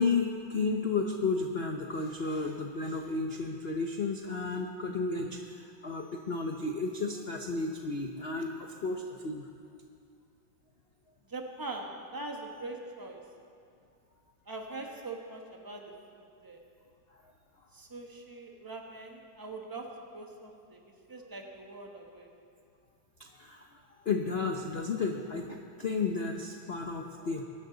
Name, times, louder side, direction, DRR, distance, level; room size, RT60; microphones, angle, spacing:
voice 1, 0.0-9.5 23.2-23.8 24.0-27.4, left 4 dB, 85° left, 2 dB, 0.5 m, -32 dB
voice 2, 11.3-13.2 14.5-16.6 17.7-20.8 21.1-22.3, right 2 dB, 15° right, 2 dB, 0.8 m, -42 dB
22.0 x 11.5 x 3.9 m, 2.4 s
omnidirectional pair, 2.2 m